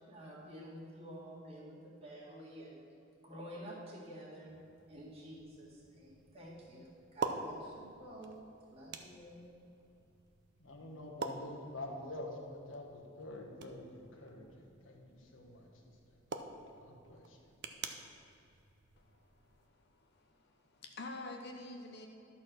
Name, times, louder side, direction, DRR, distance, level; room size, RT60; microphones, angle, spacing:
voice 1, 0.1-2.8 3.2-4.5 4.9-8.4 8.7-9.4, equal, 30° right, -6 dB, 2.0 m, -50 dB
sound 1, 4.5-19.7, right 4 dB, 55° right, 0.6 m, -47 dB
voice 2, 10.6-16.2 16.7-17.5, left 1 dB, 70° left, 0 dB, 1.4 m, -47 dB
voice 3, 19.0-22.1, left 2 dB, 55° left, 3 dB, 0.7 m, -49 dB
11.5 x 4.3 x 6.4 m, 2.7 s
head